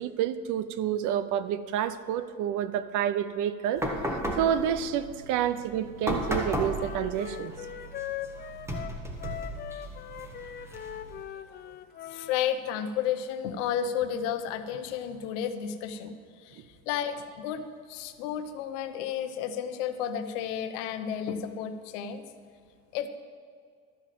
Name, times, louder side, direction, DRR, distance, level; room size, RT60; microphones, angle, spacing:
voice 1, 0.0-3.8 4.4-7.5, right 9 dB, 55° right, 13 dB, 0.7 m, -29 dB
sound 1, 3.8-11.2, equal, 5° right, 1.5 m, -35 dB
Wind instrument woodwind instrument, 6.0-12.4, left 10 dB, 30° left, 0.4 m, -41 dB
voice 2, 12.1-22.3 22.9-23.1, left 8 dB, 85° left, 8 dB, 0.9 m, -32 dB
12.5 x 5.0 x 7.5 m, 2.2 s
supercardioid pair, 120°, 35 cm